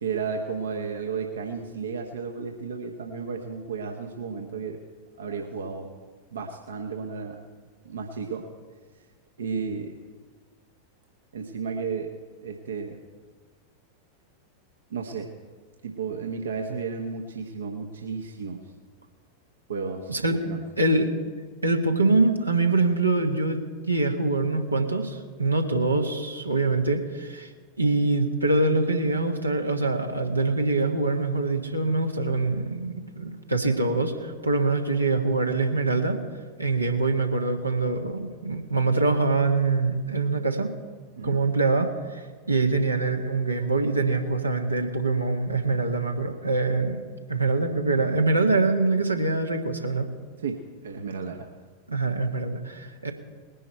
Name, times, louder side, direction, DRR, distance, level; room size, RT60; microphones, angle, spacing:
voice 1, 0.0-4.8 5.2-5.9 6.3-7.4 7.8-8.5 9.4-9.9 11.3-12.1 12.4-13.0 14.9-15.3 15.8-18.6 19.7-20.6 41.1-41.4 50.4-51.5, right 5 dB, 65° right, 3 dB, 1.1 m, -33 dB
voice 2, 20.8-21.1 21.6-23.6 23.9-27.5 27.8-36.2 36.6-40.7 41.2-47.0 47.3-50.1 51.9-53.1, right 3 dB, 85° right, 2 dB, 1.5 m, -24 dB
20.0 x 11.0 x 4.5 m, 1.5 s
figure-of-eight pair, 90°, 0 cm